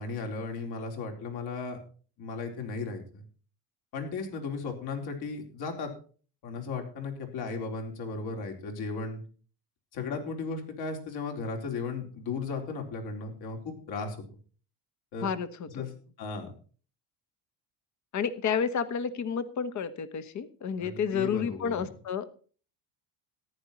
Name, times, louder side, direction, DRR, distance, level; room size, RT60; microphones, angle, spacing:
voice 1, 0.0-1.8 2.2-3.2 3.9-5.9 6.4-9.2 9.9-14.2 15.1-15.3 15.7-15.9 16.2-16.5 20.8-21.9, left 4 dB, 60° left, 3 dB, 4.1 m, -35 dB
voice 2, 15.2-15.9 18.1-22.3, left 7 dB, 40° left, 13 dB, 1.3 m, -31 dB
14.0 x 10.5 x 4.2 m, 0.40 s
cardioid pair, 110°, 42 cm